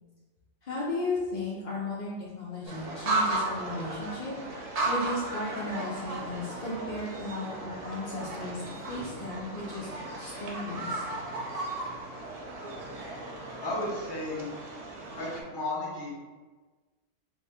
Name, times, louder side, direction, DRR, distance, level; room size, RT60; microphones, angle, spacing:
voice 1, 0.6-9.9 10.2-11.1, left 2 dB, 70° left, -6 dB, 0.4 m, -35 dB
sound 1, 2.6-15.4, right 2 dB, 70° right, 0.3 m, -35 dB
voice 2, 13.6-14.5 15.2-16.1, left 1 dB, 25° left, -5 dB, 0.6 m, -33 dB
2.7 x 2.7 x 3.3 m, 1.3 s
omnidirectional pair, 1.4 m